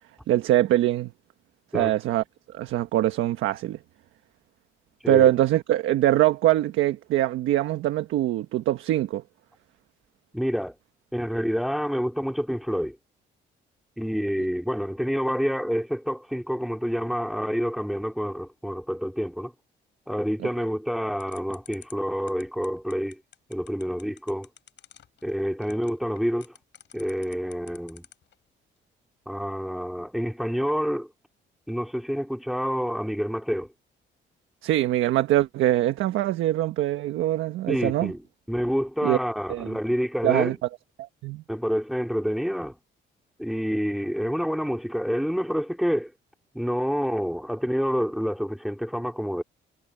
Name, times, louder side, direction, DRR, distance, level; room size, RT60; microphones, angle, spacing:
voice 1, 0.3-1.1 1.7-2.2 2.5-3.8 5.1-9.2 34.6-38.1 39.0-39.2 39.5-39.7 40.2-40.5 41.2-41.4, right 14 dB, 90° right, 1.3 m, -23 dB
voice 2, 10.3-10.7 11.1-13.0 14.0-19.5 20.1-23.2 23.5-24.5 25.2-26.5 26.9-28.0 29.3-31.1 31.7-33.7 37.7-38.2 38.5-40.5 41.5-42.7 43.4-46.1 46.5-49.4, equal, ahead, 3.1 m, -28 dB
sound 1, 21.2-28.3, left 9 dB, 65° left, 5.6 m, -50 dB
cardioid pair, 90°, 20 cm